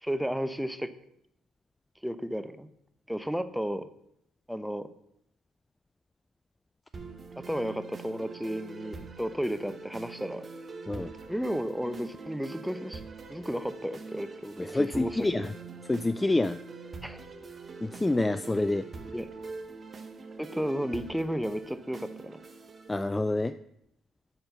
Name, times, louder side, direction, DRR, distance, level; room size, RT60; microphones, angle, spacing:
voice 1, 0.0-0.9 2.0-2.7 3.1-3.9 4.5-4.9 7.4-10.4 11.3-13.0 13.3-15.3 17.0-17.2 19.1-19.3 20.4-22.4, equal, ahead, 12 dB, 0.8 m, -33 dB
sound 1, 6.9-22.9, right 4 dB, 40° right, 1.1 m, -44 dB
voice 2, 14.6-15.5 15.9-16.6 17.8-18.9 22.9-23.5, left 2 dB, 15° left, 12 dB, 0.4 m, -27 dB
9.9 x 4.4 x 6.7 m, 0.78 s
supercardioid pair, 70°, 0 cm